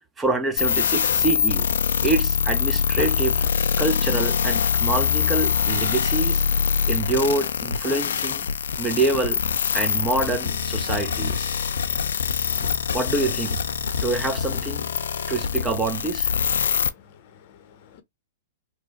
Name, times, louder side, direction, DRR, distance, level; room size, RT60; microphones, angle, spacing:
voice 1, 0.2-1.7 2.0-3.5 3.8-6.4 6.9-8.5 8.8-9.4 9.7-11.6 12.6-13.6 14.0-14.9 15.3-16.3, right 3 dB, 15° right, 0.6 m, -26 dB
sound 1, 0.6-16.9, left 7 dB, 75° left, 0.5 m, -24 dB
voice 2, 16.6-18.0, left 9 dB, 50° left, 0.8 m, -52 dB
2.9 x 2.2 x 3.9 m
hypercardioid pair, 120°, 0 cm